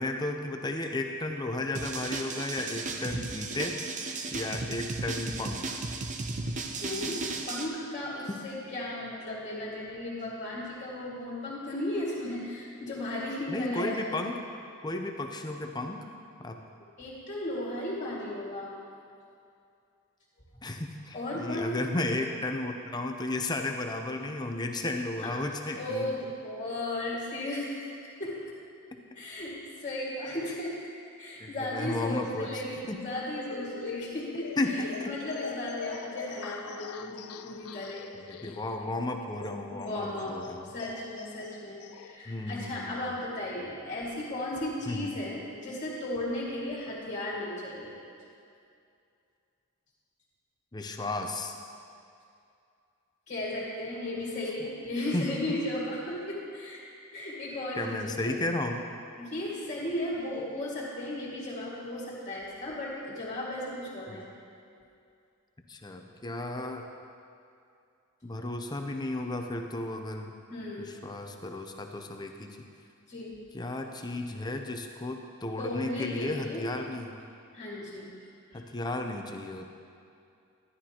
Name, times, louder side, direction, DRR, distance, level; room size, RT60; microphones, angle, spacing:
voice 1, 0.0-3.9 4.3-5.8 8.3-8.4 13.5-14.4 14.8-16.1 16.4-16.6 20.6-26.0 28.9-29.0 31.4-32.6 32.9-33.1 34.6-35.2 38.1-40.7 42.3-43.1 44.9-45.1 50.7-51.5 55.1-55.3 57.8-58.9 64.1-64.2 65.7-66.9 68.2-70.3 70.8-72.6 73.5-77.2 78.5-79.7, left 2 dB, 20° left, 4 dB, 0.6 m, -34 dB
sound 1, 1.7-7.7, right 3 dB, 35° right, 0.6 m, -35 dB
voice 2, 6.8-14.0 17.0-18.7 21.1-21.8 25.2-28.4 29.1-30.8 31.2-38.0 39.7-40.4 40.6-47.9 53.3-56.8 57.1-58.5 59.2-64.3 70.5-70.9 73.1-73.4 75.6-76.6 77.5-78.1 78.5-78.7, left 1 dB, 35° left, -5 dB, 2.1 m, -35 dB
sound 2, 33.5-42.2, left 7 dB, 80° left, 0.4 m, -43 dB
12.0 x 11.0 x 2.9 m, 2.5 s
head